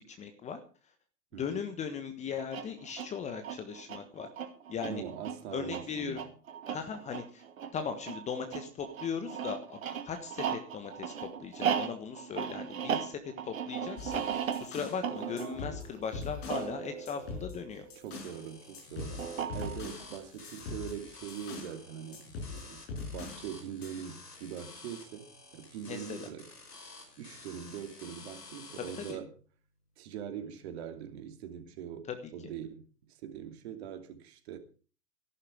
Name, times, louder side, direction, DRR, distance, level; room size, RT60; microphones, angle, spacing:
voice 1, 0.2-0.6 1.3-4.3 4.7-5.0 5.5-6.2 6.7-7.4 7.7-9.8 10.0-17.8 25.9-26.3 29.1-29.2 32.1-32.2, left 6 dB, 15° left, 1.3 m, -38 dB
voice 2, 1.3-1.6 4.8-6.3 18.0-22.8 23.1-26.5 27.2-29.3 30.0-34.6, right 9 dB, 40° right, 2.7 m, -42 dB
sound 1, 2.4-18.2 19.2-20.0, right 8 dB, 55° right, 2.5 m, -37 dB
sound 2, 14.0-15.0 15.4-16.7 17.1-18.4 18.7-21.8 22.1-23.5 23.8-23.9, left 4 dB, 40° left, 5.7 m, -42 dB
sound 3, 18.1-29.1, left 3 dB, 75° left, 5.6 m, -51 dB
14.5 x 12.0 x 5.1 m
figure-of-eight pair, 120°, 47 cm